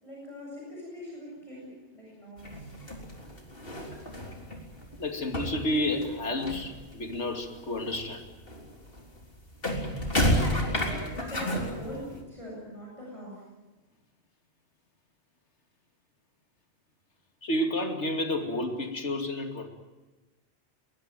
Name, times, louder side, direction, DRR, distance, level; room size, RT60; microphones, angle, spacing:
voice 1, 0.0-2.7 10.0-13.4, left 1 dB, 30° left, -4 dB, 7.9 m, -42 dB
sound 1, 2.4-5.0 5.2-7.2 7.5-12.2, equal, 55° left, 4.0 m, -31 dB
voice 2, 5.0-8.2 17.4-19.7, left 1 dB, 80° left, 5 dB, 2.7 m, -30 dB
22.0 x 21.0 x 9.1 m, 1.1 s
omnidirectional pair, 1.2 m